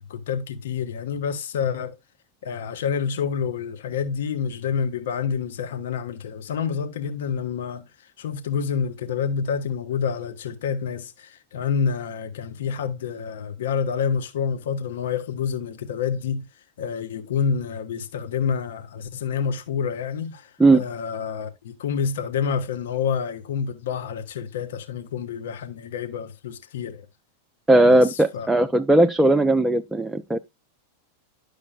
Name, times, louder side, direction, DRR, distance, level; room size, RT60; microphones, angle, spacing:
voice 1, 0.1-2.0 2.4-7.9 8.2-16.4 16.8-27.1 27.9-28.5, left 6 dB, 60° left, 0.9 m, -28 dB
voice 2, 27.7-30.4, right 2 dB, 5° right, 0.5 m, -17 dB
11.0 x 6.5 x 2.4 m
figure-of-eight pair, 90°, 0 cm